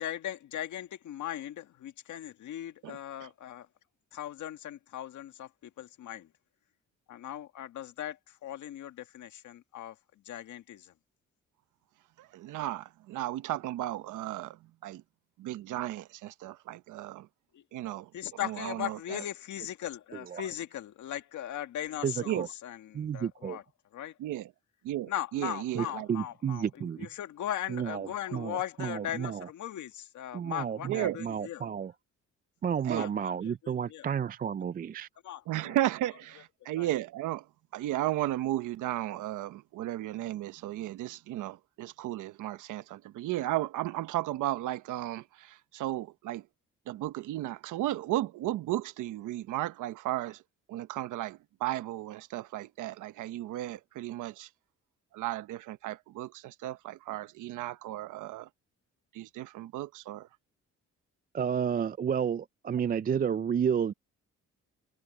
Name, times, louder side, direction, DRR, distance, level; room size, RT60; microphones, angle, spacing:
voice 1, 0.0-3.7 4.1-6.3 7.1-10.0 10.3-10.9 17.5-17.6 18.1-23.6 23.9-24.2 25.1-31.7 32.9-34.1 35.2-35.8 36.8-36.9, left 11 dB, 75° left, 1.9 m, -39 dB
voice 2, 12.2-15.0 15.4-17.3 17.7-18.1 18.4-19.2 22.3-22.5 24.2-24.5 24.8-26.1 30.8-31.2 32.9-33.1 35.5-37.4 37.7-46.4 46.9-50.4 50.7-54.5 55.1-58.5 59.1-60.3, right 14 dB, 90° right, 1.2 m, -34 dB
voice 3, 22.0-22.5 22.9-23.6 25.8-27.1 27.7-29.5 30.3-31.9 32.6-35.1 61.3-63.9, right 8 dB, 30° right, 0.4 m, -31 dB
cardioid pair, 90°, 30 cm